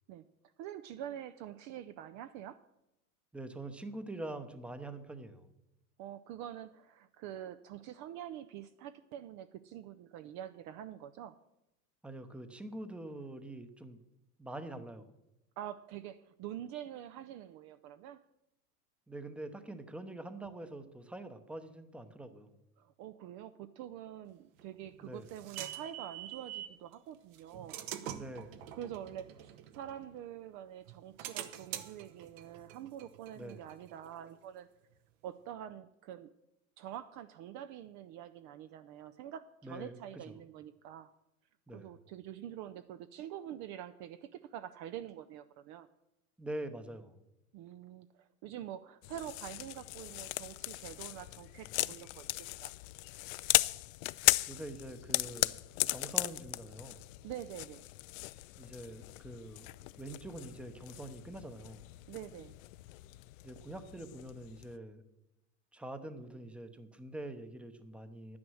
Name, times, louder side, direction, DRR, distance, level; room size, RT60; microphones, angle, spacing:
voice 1, 0.6-2.6 6.0-11.4 15.6-18.2 22.8-27.8 28.7-34.7 35.2-36.3 36.8-41.1 41.7-45.9 47.5-52.7 57.2-57.8 62.1-62.5, right 11 dB, 40° right, 11 dB, 0.5 m, -46 dB
voice 2, 3.3-5.5 12.0-14.0 14.4-15.1 19.1-22.6 25.0-25.3 28.1-28.7 33.3-33.6 39.6-40.4 41.7-41.9 46.4-47.2 54.5-55.6 55.9-57.1 58.6-59.7 60.0-61.9 63.4-65.0 65.7-68.4, right 1 dB, 5° right, 10 dB, 0.8 m, -45 dB
sound 1, 24.6-26.8 27.3-30.4 30.9-34.3, right 11 dB, 65° right, 1.1 m, -46 dB
sound 2, 49.0-64.8, left 21 dB, 60° left, 0.5 m, -37 dB
10.5 x 9.6 x 6.3 m, 0.90 s
supercardioid pair, 115°, 45 cm